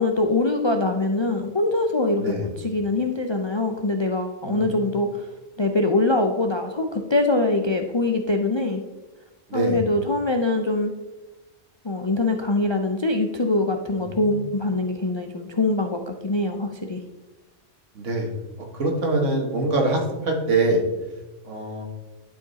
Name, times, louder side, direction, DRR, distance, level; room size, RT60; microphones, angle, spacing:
voice 1, 0.0-5.3 5.6-8.8 9.5-10.9 11.8-17.0, left 2 dB, 40° left, 4 dB, 0.4 m, -23 dB
voice 2, 4.5-4.8 9.5-9.8 13.9-14.0 14.3-14.4 18.0-18.3 18.7-20.8 21.5-21.9, right 2 dB, 75° right, 1 dB, 1.9 m, -24 dB
11.5 x 5.0 x 4.1 m, 1.1 s
omnidirectional pair, 1.3 m